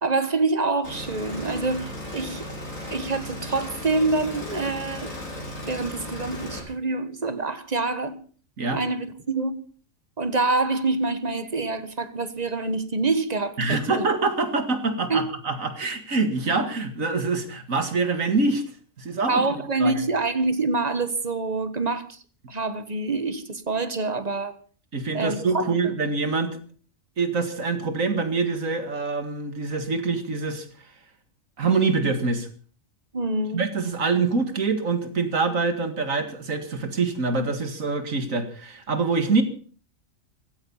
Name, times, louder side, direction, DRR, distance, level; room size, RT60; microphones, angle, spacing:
voice 1, 0.0-2.5 2.9-5.1 5.6-8.2 8.7-9.5 10.2-14.1 15.1-15.2 19.3-22.2 22.5-24.6 25.1-25.7 33.1-33.7, right 3 dB, 30° right, 1.3 m, -26 dB
sound 1, 0.8-6.6, left 1 dB, 80° left, 6.1 m, -36 dB
voice 2, 13.6-18.6 19.0-19.4 19.8-20.0 24.9-26.6 27.2-30.7 31.6-32.5 33.5-39.4, right 4 dB, 80° right, 2.5 m, -25 dB
16.0 x 14.0 x 5.6 m
omnidirectional pair, 1.4 m